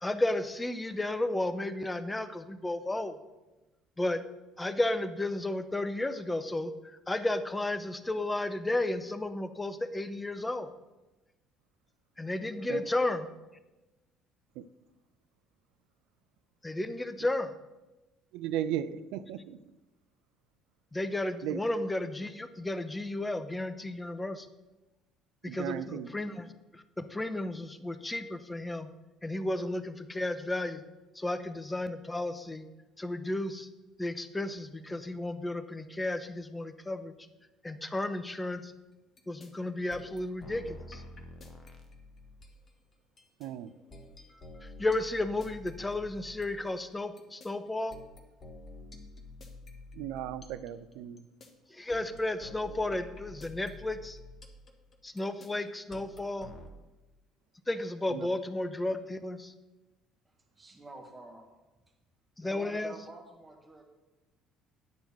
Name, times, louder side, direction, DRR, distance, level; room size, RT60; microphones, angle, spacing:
voice 1, 0.0-3.1 4.0-4.2 4.6-6.7 7.1-10.7 12.2-13.3 16.6-17.5 20.9-24.5 25.4-26.5 27.0-28.9 29.2-30.8 31.2-32.6 33.0-33.7 34.0-37.1 37.6-38.7 39.3-41.0 44.8-48.0 51.7-54.2 55.0-56.5 57.7-59.5 62.4-62.9, left 2 dB, 15° left, 11 dB, 0.8 m, -33 dB
voice 2, 18.3-19.6 21.4-21.6 25.4-26.1 43.4-43.7 49.9-51.3 58.1-58.3, right 11 dB, 70° right, 14 dB, 0.4 m, -36 dB
sound 1, 39.2-39.5 39.9-42.7 43.2-46.7 47.2-51.5 51.9-56.7, left 2 dB, 40° left, 1.4 m, -49 dB
voice 3, 60.2-61.5 62.4-63.8, right 2 dB, 20° right, 2 dB, 1.4 m, -49 dB
9.4 x 4.4 x 6.8 m, 1.1 s
hypercardioid pair, 60°, 0 cm